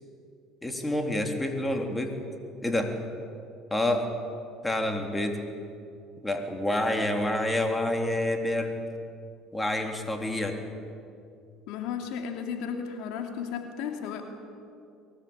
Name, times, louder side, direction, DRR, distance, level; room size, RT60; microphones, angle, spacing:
voice 1, 0.6-2.2 2.6-2.9 3.7-4.1 4.6-5.4 6.2-8.8 9.5-10.6, left 1 dB, 10° left, 4 dB, 3.5 m, -28 dB
voice 2, 11.7-14.2, left 7 dB, 70° left, 4 dB, 2.7 m, -34 dB
23.5 x 18.5 x 8.9 m, 2.5 s
hypercardioid pair, 80°, 0 cm